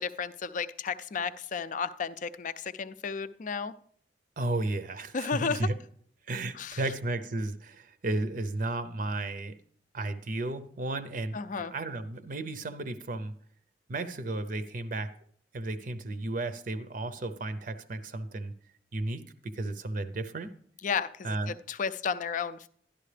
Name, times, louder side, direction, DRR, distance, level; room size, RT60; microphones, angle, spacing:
voice 1, 0.0-3.7 5.1-5.7 6.6-6.8 11.3-11.7 20.8-22.7, left 5 dB, 45° left, 14 dB, 0.4 m, -33 dB
voice 2, 4.4-5.8 6.3-9.5 9.9-13.3 13.9-15.1 15.5-18.5 18.9-20.5 21.2-21.6, right 2 dB, 50° right, 11 dB, 0.6 m, -33 dB
11.5 x 11.5 x 3.3 m, 0.62 s
head